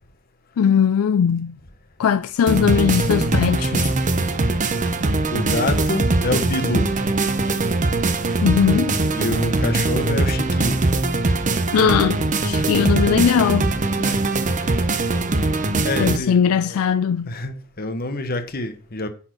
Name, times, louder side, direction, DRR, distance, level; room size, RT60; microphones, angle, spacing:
voice 1, 0.6-1.6 2.0-3.9 8.4-9.0 11.7-13.7 16.0-17.3, left 7 dB, 85° left, 0.4 m, -19 dB
sound 1, 2.5-16.2, right 2 dB, 35° right, 0.8 m, -21 dB
voice 2, 5.3-6.9 9.1-10.8 14.0-14.2 15.8-16.8 17.2-19.1, left 2 dB, 45° left, 1.2 m, -27 dB
9.7 x 4.4 x 6.1 m
head